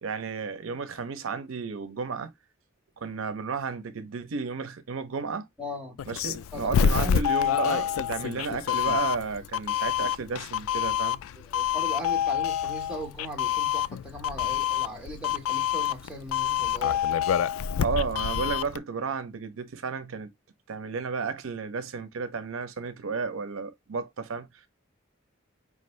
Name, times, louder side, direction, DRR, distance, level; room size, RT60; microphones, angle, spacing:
voice 1, 0.0-2.3 3.0-5.5 6.1-11.2 17.8-20.3 20.7-24.6, right 5 dB, 75° right, 0.6 m, -33 dB
voice 2, 5.6-6.2 6.5-7.2 8.2-8.5 11.4-17.2, equal, 5° right, 1.4 m, -39 dB
Doorbell, 6.0-18.8, left 9 dB, 85° left, 0.3 m, -27 dB
4.8 x 2.6 x 3.1 m
head